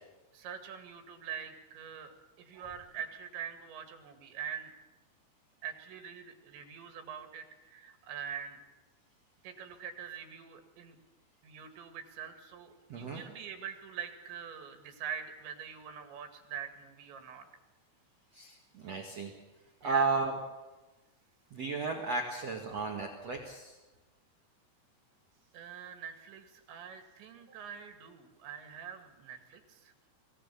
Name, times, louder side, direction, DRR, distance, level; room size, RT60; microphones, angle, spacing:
voice 1, 0.3-4.7 5.6-8.6 9.4-11.0 11.4-17.5 19.8-20.2 25.5-29.9, right 8 dB, 85° right, 7 dB, 4.3 m, -44 dB
voice 2, 12.9-13.2 18.3-19.3 19.8-20.3 21.5-23.7, right 4 dB, 50° right, 1 dB, 2.3 m, -34 dB
23.0 x 16.5 x 8.5 m, 1.1 s
omnidirectional pair, 5.0 m